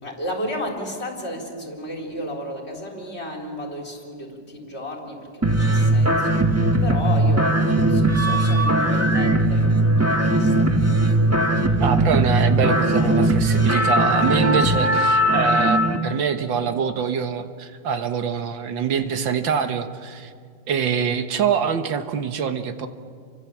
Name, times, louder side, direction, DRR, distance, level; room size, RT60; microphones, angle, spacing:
voice 1, 0.0-11.5 14.6-14.7, left 1 dB, 35° left, 2 dB, 3.7 m, -33 dB
sound 1, 5.4-16.0, right 1 dB, 10° right, 1.2 m, -19 dB
voice 2, 11.8-20.3 20.7-22.9, right 6 dB, 85° right, 8 dB, 2.0 m, -24 dB
29.5 x 25.0 x 7.4 m, 2.1 s
omnidirectional pair, 2.0 m